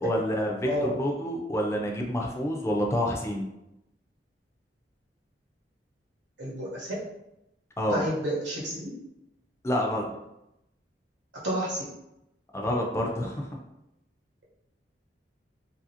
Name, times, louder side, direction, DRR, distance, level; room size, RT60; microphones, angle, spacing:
voice 1, 0.0-3.5 7.8-8.1 9.6-10.1 12.5-13.5, equal, 15° left, 0 dB, 0.4 m, -28 dB
voice 2, 6.4-6.9 7.9-8.9 11.4-11.8, equal, 90° right, -5 dB, 1.0 m, -30 dB
2.7 x 2.5 x 2.7 m, 0.87 s
head